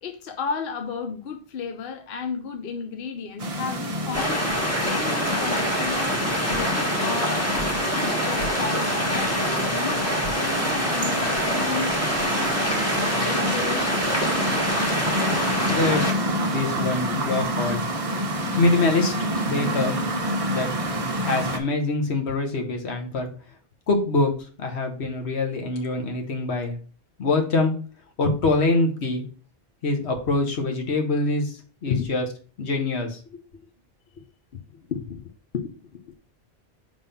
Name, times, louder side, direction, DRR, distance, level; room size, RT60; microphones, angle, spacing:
voice 1, 0.0-4.4 4.8-7.5 7.9-10.0 10.4-12.1 13.0-14.0 17.1-17.2 20.4-20.9 31.9-32.1 34.5-34.6 34.9-36.1, left 5 dB, 65° left, 0.9 m, -33 dB
sound 1, 3.4-21.6, right 1 dB, 35° right, 0.8 m, -28 dB
sound 2, 4.1-16.1, equal, 15° left, 1.2 m, -26 dB
voice 2, 15.7-17.8 18.6-20.0 20.5-20.7 21.2-23.3 23.9-24.3 24.6-26.8 27.2-27.7 28.2-29.2 29.8-32.2 32.6-33.2, left 3 dB, 80° left, 1.4 m, -24 dB
5.2 x 3.6 x 5.6 m
omnidirectional pair, 1.1 m